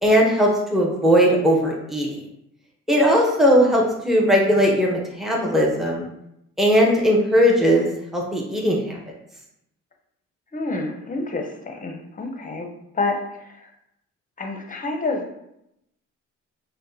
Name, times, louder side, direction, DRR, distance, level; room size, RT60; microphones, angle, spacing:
voice 1, 0.0-2.1 2.9-6.0 6.6-9.0, equal, ahead, -2 dB, 0.8 m, -18 dB
voice 2, 10.5-12.7 12.9-13.7 14.4-15.4, left 3 dB, 25° left, 3 dB, 0.7 m, -29 dB
5.7 x 2.2 x 2.7 m, 0.81 s
cardioid pair, 90°, 30 cm